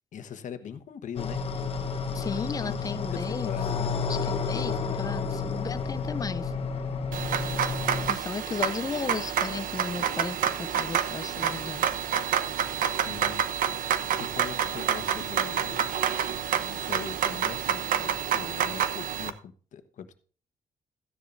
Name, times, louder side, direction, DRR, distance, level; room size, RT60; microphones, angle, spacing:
voice 1, 0.1-1.4 2.6-3.9 12.9-13.4 14.1-15.9 16.5-20.1, left 8 dB, 65° left, 1.2 m, -41 dB
sound 1, 1.2-8.1, left 5 dB, 45° left, 1.1 m, -31 dB
voice 2, 2.1-3.6 4.1-6.5 7.3-7.5 8.1-11.8, left 5 dB, 25° left, 0.5 m, -35 dB
sound 2, 7.1-19.3, right 9 dB, 85° right, 1.0 m, -28 dB
15.0 x 10.0 x 2.6 m
cardioid pair, 125°, 14 cm